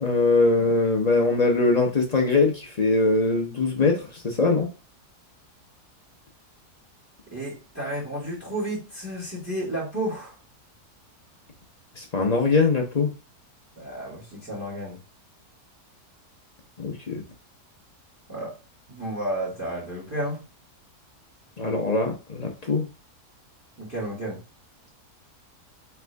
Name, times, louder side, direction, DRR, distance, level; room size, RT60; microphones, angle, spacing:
voice 1, 0.0-4.7 12.0-13.1 16.8-17.2 21.6-22.9, left 3 dB, 50° left, 1 dB, 0.5 m, -22 dB
voice 2, 7.3-10.3 13.8-15.0 18.3-18.5 18.9-20.4 23.8-24.4, right 1 dB, 10° right, -4 dB, 1.9 m, -32 dB
3.6 x 3.5 x 3.3 m, 0.31 s
omnidirectional pair, 1.7 m